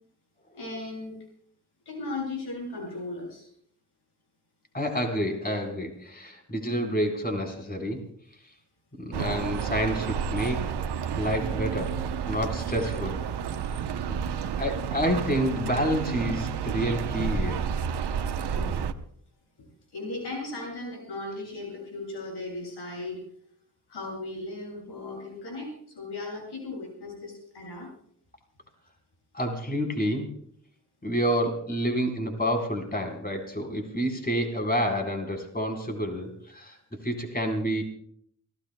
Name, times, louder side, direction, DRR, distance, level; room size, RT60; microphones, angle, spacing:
voice 1, 0.5-1.2 1.9-3.5 18.5-18.8 19.6-23.2 23.9-27.9, left 2 dB, 85° left, 0 dB, 7.5 m, -37 dB
voice 2, 4.7-8.0 9.0-10.7 11.2-12.0 12.3-13.2 14.0-17.6 29.3-30.3 31.0-36.8 37.0-37.8, equal, 25° left, 3 dB, 4.1 m, -29 dB
sound 1, 9.1-18.9, right 7 dB, 85° right, 0.9 m, -30 dB
28.5 x 17.5 x 2.2 m, 0.64 s
cardioid pair, 45°, 39 cm